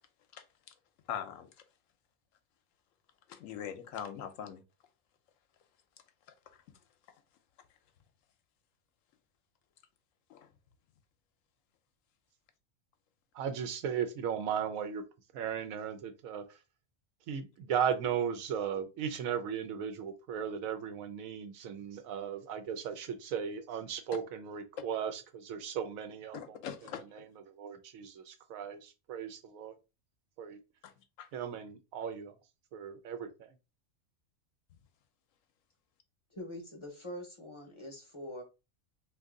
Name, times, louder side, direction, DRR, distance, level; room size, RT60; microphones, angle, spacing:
voice 1, 1.1-1.5 3.3-4.6 10.3-10.5 26.3-27.0 31.2-31.3, left 9 dB, 75° left, 0.9 m, -41 dB
voice 2, 13.3-15.0 15.3-16.4 17.3-26.6 27.1-27.2 27.6-29.7 30.4-30.6 31.3-32.3 32.7-33.3, right 8 dB, 85° right, 1.1 m, -36 dB
voice 3, 36.3-38.4, left 1 dB, 30° left, 0.6 m, -44 dB
2.6 x 2.6 x 3.6 m
omnidirectional pair, 1.4 m